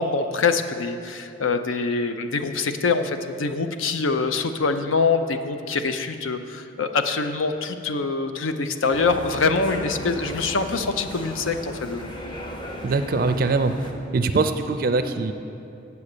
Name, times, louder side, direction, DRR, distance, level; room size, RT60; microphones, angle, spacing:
voice 1, 0.0-12.0, left 4 dB, 85° left, 8 dB, 0.6 m, -24 dB
sound 1, 8.9-13.9, equal, 25° left, 0.7 m, -36 dB
voice 2, 12.8-13.7 14.1-15.3, right 3 dB, 45° right, 9 dB, 0.4 m, -22 dB
8.5 x 6.9 x 6.6 m, 2.7 s
head